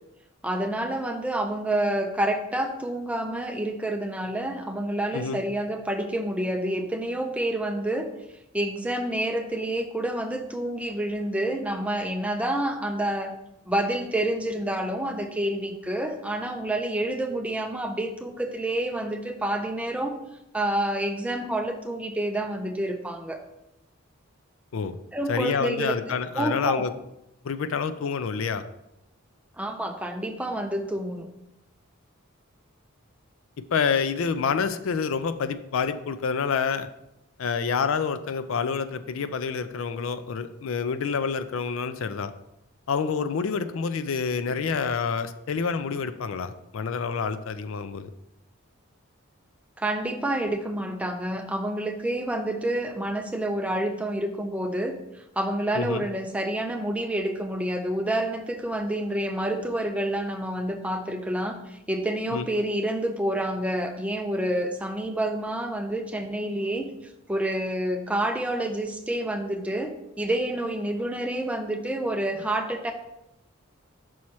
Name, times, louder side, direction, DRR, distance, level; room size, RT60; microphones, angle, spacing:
voice 1, 0.4-8.1 8.5-13.4 13.7-20.1 20.5-23.4 25.1-26.0 26.3-26.9 29.6-31.3 49.8-66.9 67.3-72.9, right 1 dB, 5° right, 4 dB, 0.5 m, -28 dB
voice 2, 25.3-26.9 27.4-28.6 33.7-36.9 37.4-42.3 42.9-48.1 55.7-56.1 62.3-62.5, left 5 dB, 70° left, 11 dB, 0.4 m, -28 dB
6.2 x 4.2 x 4.6 m, 0.85 s
head